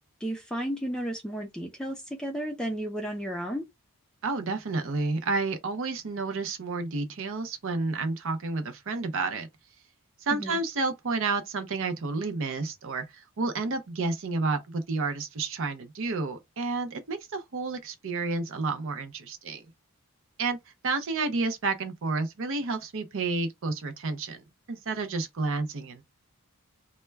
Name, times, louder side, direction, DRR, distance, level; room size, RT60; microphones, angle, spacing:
voice 1, 0.0-3.7 10.3-10.6, equal, 5° left, 0.4 m, -33 dB
voice 2, 4.2-9.5 10.2-19.6 20.4-20.6 20.8-26.0, right 3 dB, 60° right, 0.5 m, -30 dB
2.2 x 2.1 x 3.2 m
head